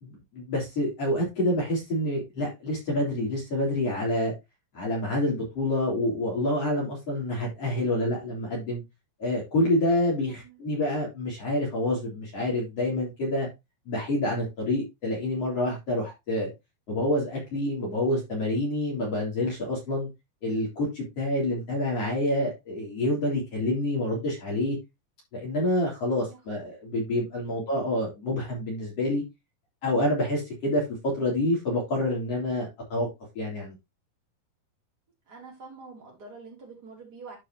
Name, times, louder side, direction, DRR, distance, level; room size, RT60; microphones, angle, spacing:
voice 1, 0.0-4.3 4.7-8.8 9.2-13.5 13.9-16.5 16.9-20.1 20.4-24.8 25.3-29.2 29.8-33.1 33.4-33.7, left 1 dB, 45° left, 4.2 m, -27 dB
voice 2, 10.3-10.6 26.3-26.7 27.4-27.6 35.3-37.4, right 4 dB, 30° right, 3.9 m, -46 dB
12.0 x 5.5 x 2.9 m
omnidirectional pair, 3.9 m